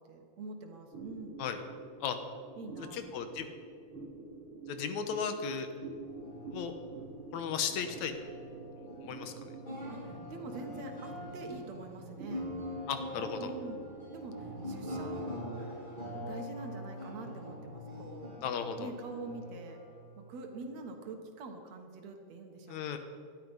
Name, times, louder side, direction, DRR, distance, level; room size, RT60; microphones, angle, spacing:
voice 1, 0.0-1.4 2.6-3.0 9.9-12.5 13.4-13.8 14.1-15.5 16.2-18.4 18.8-19.8 20.3-23.0, right 2 dB, 65° right, 4 dB, 2.7 m, -45 dB
sound 1, 0.9-19.7, right 3 dB, 50° right, 1.9 m, -49 dB
voice 2, 2.9-3.5 4.7-5.7 6.5-6.7 7.3-8.1 8.8-9.3 12.9-13.5 18.4-18.9 22.7-23.0, left 7 dB, 75° left, 8 dB, 2.4 m, -35 dB
sound 2, 6.0-20.7, equal, 15° left, 4.7 m, -44 dB
19.0 x 12.0 x 5.5 m, 2.3 s
omnidirectional pair, 3.3 m